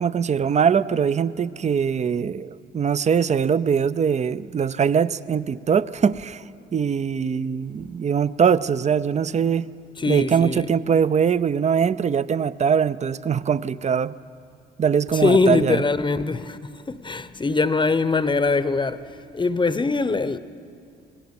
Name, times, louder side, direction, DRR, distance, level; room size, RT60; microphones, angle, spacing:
voice 1, 0.0-6.4 6.7-9.7 10.1-14.1 14.8-15.8, right 7 dB, 35° right, 0.6 m, -22 dB
voice 2, 10.0-10.7 15.1-16.6 16.9-19.0 19.3-20.4, left 3 dB, 25° left, 0.9 m, -22 dB
26.0 x 19.0 x 7.2 m
cardioid pair, 90°, 20 cm